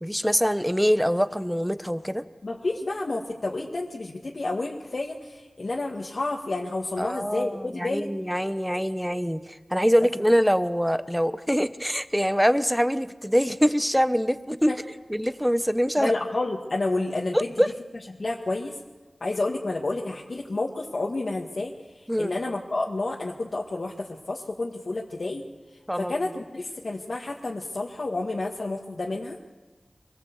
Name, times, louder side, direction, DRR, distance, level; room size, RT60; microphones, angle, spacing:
voice 1, 0.0-2.3 7.0-14.7 15.1-16.1 17.3-17.7 22.1-22.3 25.9-26.1, equal, ahead, 12 dB, 1.1 m, -24 dB
voice 2, 2.4-8.1 14.7-14.8 16.0-17.4 18.2-18.8 19.2-21.7 22.2-25.4 26.0-29.4, left 2 dB, 65° left, -1 dB, 1.9 m, -30 dB
24.0 x 19.0 x 8.2 m, 1.3 s
wide cardioid pair, 55°, 0 cm